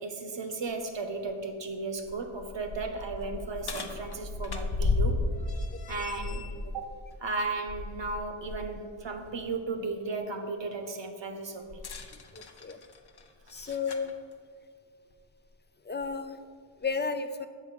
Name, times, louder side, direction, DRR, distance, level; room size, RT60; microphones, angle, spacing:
voice 1, 0.0-5.3 5.9-6.9 7.2-11.8 13.5-13.7, right 3 dB, 60° right, 6 dB, 0.9 m, -35 dB
sound 1, 1.3-1.4 2.0-8.7 9.1-9.3 11.7-14.1 15.1-15.2 16.0-16.1, left 3 dB, 50° left, 0.7 m, -34 dB
voice 2, 5.7-6.1 12.3-12.8 13.5-14.1 15.8-16.4 16.8-17.5, left 5 dB, 25° left, 9 dB, 0.4 m, -33 dB
7.3 x 3.5 x 6.0 m, 2.1 s
cardioid pair, 45°, 49 cm